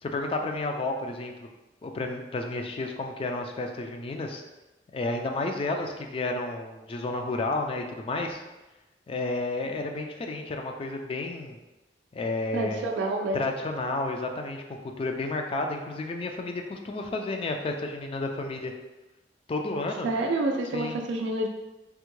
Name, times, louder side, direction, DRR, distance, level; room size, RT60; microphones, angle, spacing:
voice 1, 0.0-1.5 1.8-4.4 4.9-8.4 9.1-11.6 12.1-12.9 13.3-18.7 19.5-20.1 20.7-21.0, left 2 dB, 30° left, 3 dB, 0.3 m, -31 dB
voice 2, 12.5-13.4 20.0-21.5, right 2 dB, 90° right, 2 dB, 0.3 m, -28 dB
3.4 x 2.1 x 3.0 m, 1.1 s
head